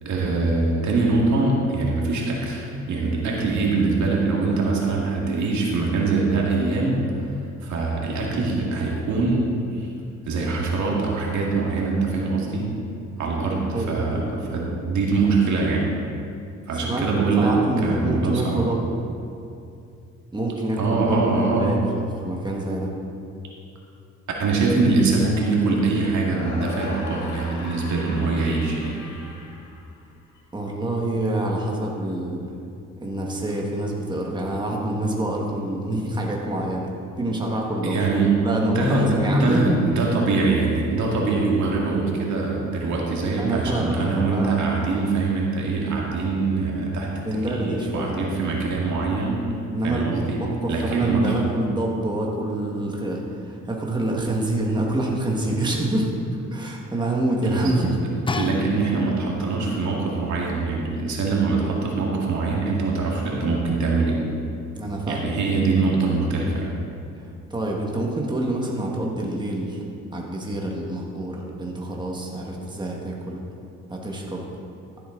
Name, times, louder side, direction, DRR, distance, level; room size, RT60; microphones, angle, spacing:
voice 1, 0.0-7.0 7.6-9.9 10.3-12.7 13.2-16.0 16.7-18.6 20.8-21.8 24.4-29.0 37.8-38.4 38.6-49.5 49.8-50.4 50.7-51.4 57.5-57.8 58.4-64.2 65.1-66.7, right 3 dB, 70° right, -2 dB, 2.2 m, -23 dB
voice 2, 13.7-14.3 16.8-17.1 17.4-18.8 20.3-22.9 30.5-32.6 33.0-36.9 37.2-38.0 38.4-39.9 43.4-44.6 47.2-48.2 49.7-50.0 50.6-56.1 56.5-57.9 64.7-65.3 67.2-69.8 70.1-73.4 73.9-74.4, right 1 dB, 15° right, -2 dB, 1.7 m, -26 dB
sound 1, 26.2-30.4, left 3 dB, 80° left, 1.6 m, -37 dB
sound 2, 58.3-59.5 60.3-60.4, left 3 dB, 15° left, 0.5 m, -30 dB
14.0 x 8.2 x 3.9 m, 2.6 s
cardioid pair, 90°, 30 cm